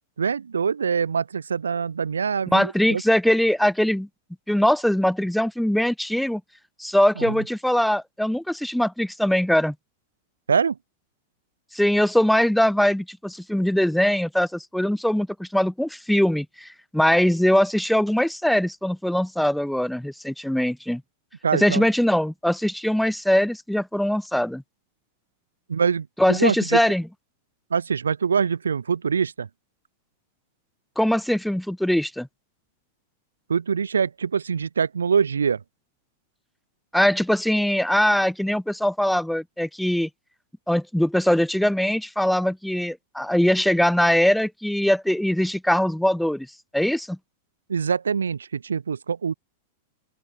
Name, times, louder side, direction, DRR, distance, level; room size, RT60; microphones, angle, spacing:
voice 1, 0.2-3.0 7.2-7.4 10.5-10.8 21.4-21.9 25.7-26.8 27.7-29.5 33.5-35.6 47.7-49.3, right 6 dB, 75° right, 0.4 m, -24 dB
voice 2, 2.5-4.1 4.5-6.4 6.8-9.7 11.7-21.0 21.5-24.6 26.2-27.1 31.0-32.3 36.9-40.1 40.7-46.5 46.7-47.2, left 1 dB, ahead, 0.4 m, -22 dB
open air
figure-of-eight pair, 95°, 0 cm